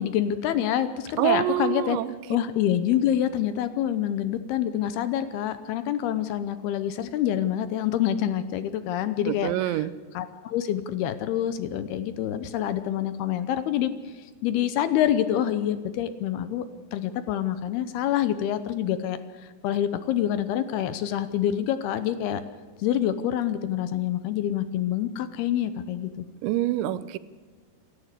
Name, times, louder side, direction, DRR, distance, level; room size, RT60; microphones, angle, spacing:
voice 1, 0.0-2.0 2.3-9.9 10.1-16.7 16.9-22.4 22.8-26.3, left 11 dB, 75° left, 12 dB, 2.6 m, -27 dB
voice 2, 1.2-2.1 9.3-9.9 26.4-27.2, right 14 dB, 90° right, 16 dB, 3.1 m, -26 dB
27.5 x 12.0 x 8.3 m, 1.5 s
omnidirectional pair, 5.0 m